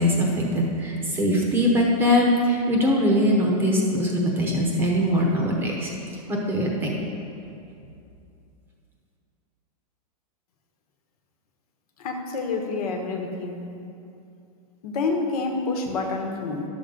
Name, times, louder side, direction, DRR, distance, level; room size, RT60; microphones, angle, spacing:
voice 1, 0.0-5.9 6.3-7.0, equal, 10° right, -1 dB, 0.9 m, -22 dB
voice 2, 12.0-13.6 14.8-16.7, left 3 dB, 70° left, 3 dB, 1.4 m, -28 dB
11.5 x 7.1 x 3.9 m, 2.6 s
supercardioid pair, 165°, 20 cm